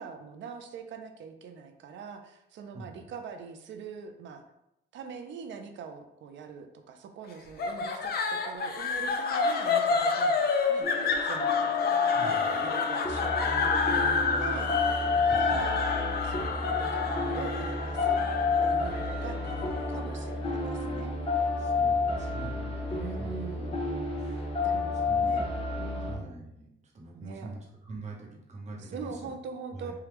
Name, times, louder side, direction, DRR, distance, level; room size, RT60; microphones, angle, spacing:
voice 1, 0.0-4.4 4.9-10.4 10.7-10.9 11.2-11.7 12.2-14.1 14.4-14.7 15.4-15.9 16.2-18.2 18.6-21.3 22.9-23.9 24.6-25.5 25.8-26.3 27.1-27.5 28.8-29.9, right 6 dB, 70° right, 6 dB, 0.5 m, -43 dB
voice 2, 2.7-3.1 12.1-12.7 15.3-15.5 21.6-22.7 23.2-25.5 26.0-29.4 29.7-29.9, right 2 dB, 35° right, -1 dB, 0.9 m, -45 dB
sound 1, 7.6-20.8, left 5 dB, 50° left, 0.5 m, -29 dB
sound 2, 10.8-26.2, left 3 dB, 30° left, 0.8 m, -30 dB
3.4 x 2.3 x 2.9 m, 0.84 s
cardioid pair, 90°, 20 cm